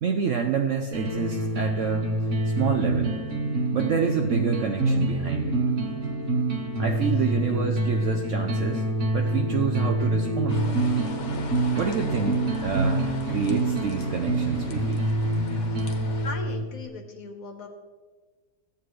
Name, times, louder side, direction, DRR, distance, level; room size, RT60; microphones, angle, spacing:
voice 1, 0.0-2.1 2.6-3.1 3.7-5.6 6.8-8.8 9.1-10.7 11.8-15.0, right 6 dB, 65° right, 3 dB, 0.8 m, -28 dB
sound 1, 0.9-16.9, right 2 dB, 45° right, 1.4 m, -26 dB
sound 2, 10.5-16.3, left 4 dB, 85° left, 1.7 m, -39 dB
voice 2, 16.2-17.7, left 3 dB, 55° left, 4 dB, 1.5 m, -38 dB
14.5 x 8.4 x 3.2 m, 1.4 s
omnidirectional pair, 1.8 m